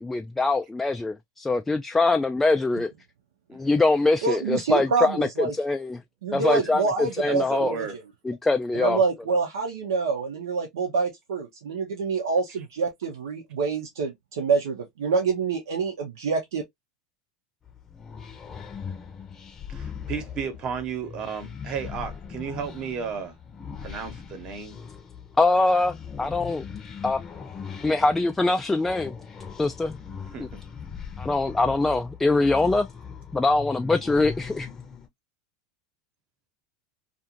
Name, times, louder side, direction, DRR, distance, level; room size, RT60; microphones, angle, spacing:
voice 1, 0.0-2.9 3.5-5.3 5.6-6.0 6.3-7.7 8.3-9.0 25.4-26.6 27.0-27.2 27.8-29.1 29.6-30.0 30.4-30.5 31.2-32.9 33.3-34.7, left 3 dB, 10° left, 0.3 m, -23 dB
voice 2, 4.2-5.5 6.2-7.9 8.7-16.6, right 4 dB, 85° right, 0.7 m, -26 dB
voice 3, 6.4-6.7 7.3-8.0 19.7-23.3 23.8-24.8 30.3-30.6, right 6 dB, 40° right, 1.0 m, -34 dB
sound 1, 17.6-35.1, left 6 dB, 25° left, 0.7 m, -40 dB
2.5 x 2.4 x 2.8 m
hypercardioid pair, 105°, 2 cm